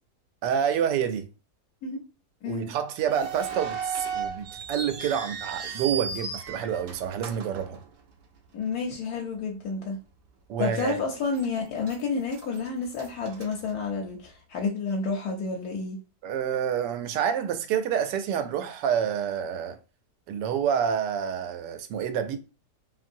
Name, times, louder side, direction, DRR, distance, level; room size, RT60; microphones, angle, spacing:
voice 1, 0.4-1.2 2.5-7.8 10.5-11.0 16.2-19.8 20.3-22.4, right 8 dB, 90° right, 1.2 m, -28 dB
sound 1, 3.0-8.4 8.7-8.8 9.5-9.7 10.2-10.3 10.9-11.5 11.8-14.3, right 6 dB, 70° right, 0.5 m, -36 dB
voice 2, 8.5-10.0 10.6-16.0, left 4 dB, 70° left, 1.1 m, -30 dB
3.0 x 2.6 x 2.6 m
omnidirectional pair, 1.8 m